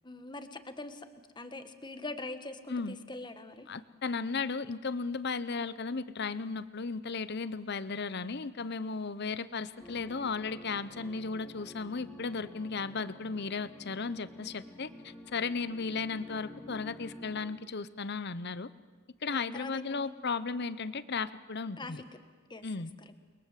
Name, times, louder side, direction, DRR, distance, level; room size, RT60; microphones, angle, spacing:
voice 1, 0.0-1.1 1.3-3.7 15.6-15.8 19.3-20.2 21.8-22.0 22.5-22.6 23.0-23.1, left 2 dB, 20° left, 8 dB, 1.4 m, -43 dB
voice 2, 3.7-18.7 19.2-22.0 22.6-22.9, left 4 dB, 55° left, 15 dB, 0.9 m, -35 dB
sound 1, 9.8-17.5, equal, ahead, 3.3 m, -50 dB
29.5 x 22.0 x 7.5 m, 1.5 s
head